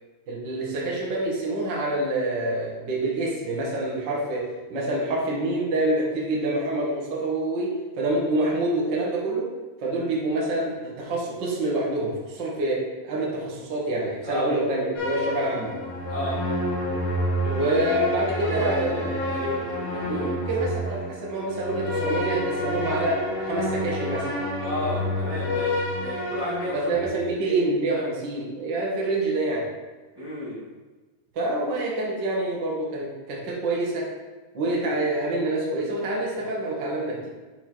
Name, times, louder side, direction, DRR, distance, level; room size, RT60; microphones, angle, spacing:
voice 1, 0.3-7.7 8.0-9.5 9.8-15.8 17.5-19.1 20.1-24.4 26.7-29.7 31.3-34.1 34.5-37.3, right 2 dB, 50° right, -4 dB, 1.3 m, -27 dB
voice 2, 14.2-14.5 16.1-16.4 17.4-17.8 18.4-20.3 24.6-28.1 30.1-30.7 34.7-35.0, equal, 25° right, -11 dB, 0.5 m, -33 dB
sound 1, 14.9-27.1, equal, 50° left, 2.1 m, -29 dB
8.9 x 4.6 x 4.5 m, 1.3 s
omnidirectional pair, 5.0 m